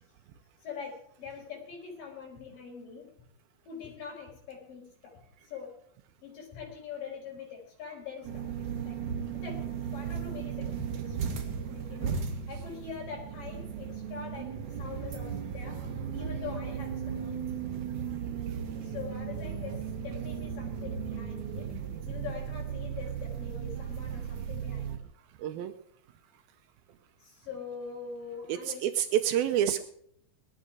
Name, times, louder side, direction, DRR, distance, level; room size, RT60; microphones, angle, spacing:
voice 1, 0.6-3.1 3.7-5.8 6.2-8.5 8.8-9.0 9.4-11.3 11.6-17.2 18.8-21.8 22.1-25.0 27.2-28.9, left 6 dB, 65° left, -1 dB, 6.6 m, -43 dB
sound 1, 8.2-25.0, right 7 dB, 60° right, 3.1 m, -36 dB
voice 2, 25.4-25.7 28.5-29.8, right 10 dB, 80° right, 8 dB, 2.6 m, -28 dB
18.5 x 12.5 x 4.8 m, 0.67 s
omnidirectional pair, 4.2 m